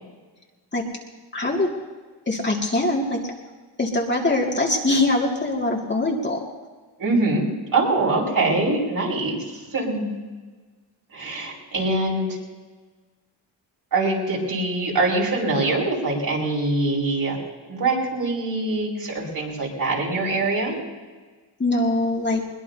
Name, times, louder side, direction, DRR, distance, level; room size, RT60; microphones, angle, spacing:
voice 1, 1.3-1.7 2.3-3.3 3.8-6.5 21.6-22.4, left 2 dB, 25° left, -2 dB, 2.3 m, -22 dB
voice 2, 7.0-7.4 7.7-9.4 9.7-10.1 11.1-12.3 13.9-17.4 17.7-20.8, right 2 dB, 50° right, -3 dB, 5.4 m, -23 dB
22.0 x 20.5 x 2.8 m, 1.4 s
cardioid pair, 100°, 43 cm